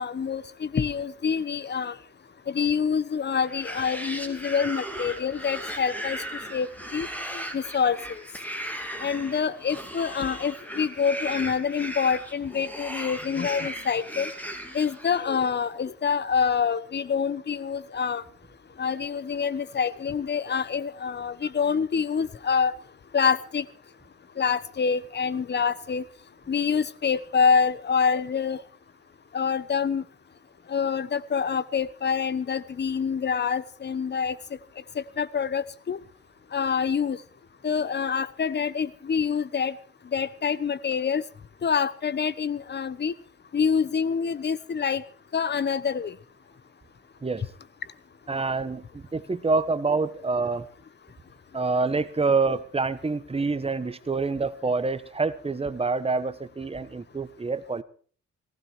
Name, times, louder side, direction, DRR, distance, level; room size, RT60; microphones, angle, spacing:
voice 1, 0.0-2.0 2.5-7.1 7.3-8.2 9.0-14.3 14.7-18.2 18.8-22.7 23.1-23.6 24.4-26.0 26.5-28.6 29.3-30.0 30.7-34.4 34.9-36.0 36.5-37.2 37.6-39.7 40.1-41.2 41.6-43.1 43.5-45.0 45.3-46.1, left 6 dB, 35° left, 19 dB, 1.1 m, -26 dB
sound 1, 3.4-15.4, equal, 5° left, 3.5 m, -37 dB
voice 2, 48.3-50.7 51.5-57.8, right 4 dB, 20° right, 11 dB, 1.4 m, -27 dB
18.0 x 16.0 x 4.7 m, 0.44 s
cardioid pair, 90°, 30 cm